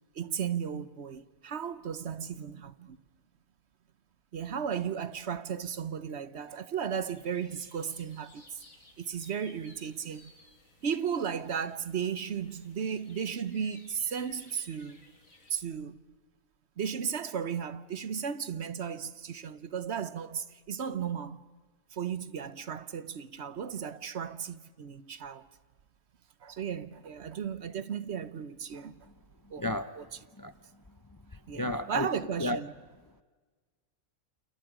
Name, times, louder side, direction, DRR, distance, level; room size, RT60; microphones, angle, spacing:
voice 1, 0.1-3.0 4.3-8.6 9.0-10.3 10.8-15.0 15.5-16.0 16.8-21.4 21.9-25.5 26.4-29.0 29.5-30.1 31.5-32.7, right 7 dB, 55° right, 1.1 m, -35 dB
sound 1, 7.1-15.5, left 2 dB, 70° left, 3.5 m, -59 dB
voice 2, 29.6-29.9 30.4-30.5 31.6-32.1 32.4-32.6, left 1 dB, 30° left, 0.4 m, -31 dB
29.0 x 29.0 x 5.0 m
omnidirectional pair, 1.4 m